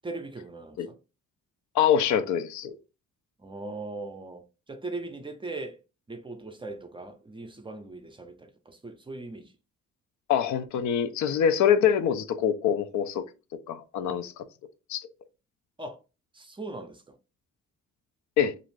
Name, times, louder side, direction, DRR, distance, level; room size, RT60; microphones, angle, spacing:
voice 1, 0.0-0.9 3.4-4.4 4.7-5.8 6.1-9.5 15.8-16.0 16.3-17.2, right 2 dB, 15° right, 0.5 m, -39 dB
voice 2, 1.7-2.7 10.3-13.2 13.7-14.4 14.9-15.1 18.4-18.5, left 8 dB, 70° left, 0.5 m, -24 dB
2.5 x 2.5 x 3.1 m
cardioid pair, 90°, 30 cm